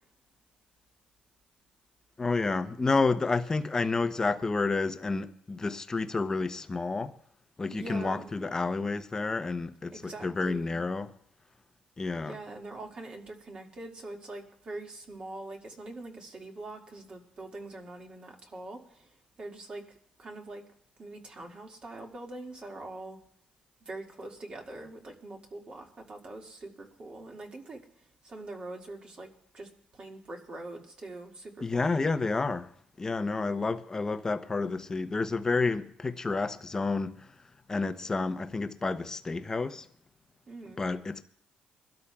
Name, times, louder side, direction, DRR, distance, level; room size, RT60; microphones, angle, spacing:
voice 1, 2.2-7.2 7.6-11.1 12.0-12.4 31.6-32.7 33.0-37.3 37.7-39.9 40.8-41.2, left 3 dB, 20° left, 0.7 m, -30 dB
voice 2, 7.7-8.4 9.9-10.8 12.3-20.6 21.0-23.2 23.9-29.3 29.5-31.9 40.5-40.8, right 2 dB, 40° right, 2.0 m, -43 dB
25.0 x 12.5 x 2.3 m
cardioid pair, 120°, 3 cm